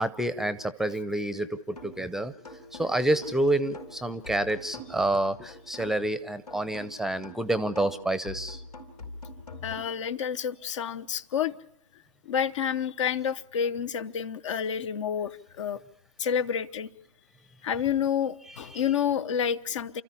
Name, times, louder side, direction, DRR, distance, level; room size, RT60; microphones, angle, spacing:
voice 1, 0.0-2.3 2.8-8.6 18.7-18.8, right 1 dB, ahead, 0.8 m, -28 dB
sound 1, 1.8-2.1 2.4-6.1 6.5-9.8, left 1 dB, 90° left, 4.9 m, -44 dB
voice 2, 9.6-11.5 12.3-15.8 16.2-16.9 17.6-20.0, left 8 dB, 55° left, 1.1 m, -29 dB
30.0 x 14.0 x 8.5 m
figure-of-eight pair, 125°, 19 cm